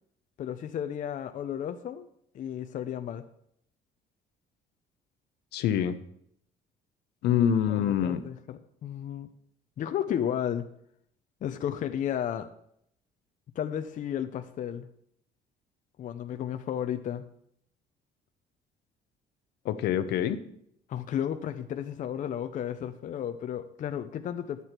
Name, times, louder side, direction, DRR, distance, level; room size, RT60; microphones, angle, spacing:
voice 1, 0.4-2.1 2.3-3.2 7.7-9.3 9.8-10.7 11.4-12.5 13.6-14.9 16.0-17.2 20.9-24.6, left 9 dB, 50° left, 8 dB, 0.6 m, -33 dB
voice 2, 5.5-6.0 7.2-8.2 19.6-20.4, left 9 dB, 75° left, 10 dB, 0.8 m, -25 dB
11.0 x 8.2 x 4.4 m, 0.72 s
cardioid pair, 110°, 17 cm